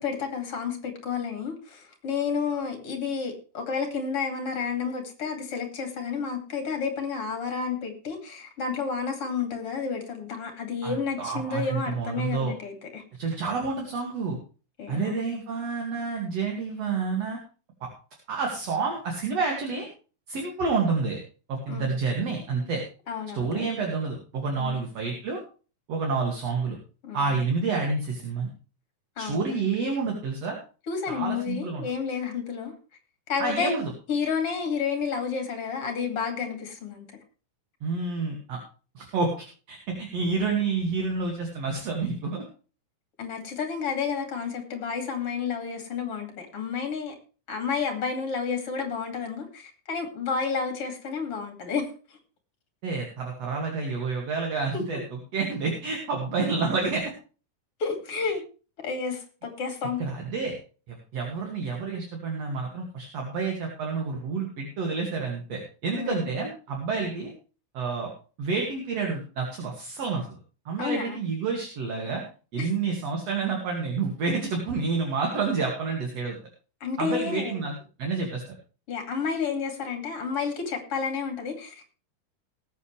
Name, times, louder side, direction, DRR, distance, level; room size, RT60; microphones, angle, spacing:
voice 1, 0.0-13.0 14.8-15.3 21.7-21.9 23.1-23.7 24.6-24.8 27.0-27.2 29.2-29.6 30.9-32.7 33.3-33.7 34.1-37.1 43.2-47.2 47.5-51.9 54.7-54.8 57.8-58.4 58.8-60.0 65.9-66.3 70.8-71.2 72.6-72.7 76.8-77.6 78.9-81.9, left 5 dB, 50° left, 5 dB, 3.4 m, -31 dB
voice 2, 10.8-12.5 13.1-14.4 14.9-17.4 18.3-19.9 20.3-21.2 21.5-22.8 23.3-25.4 25.9-26.8 27.1-28.5 29.2-30.6 31.1-31.8 33.4-33.9 37.8-38.6 39.0-42.4 52.8-57.0 58.2-58.3 60.0-60.6 60.9-67.3 67.7-68.1 68.4-70.3 70.7-72.2 72.5-76.4 77.0-77.7 78.0-78.4, right 4 dB, 55° right, 0 dB, 3.3 m, -29 dB
19.5 x 8.4 x 3.3 m, 0.36 s
omnidirectional pair, 3.5 m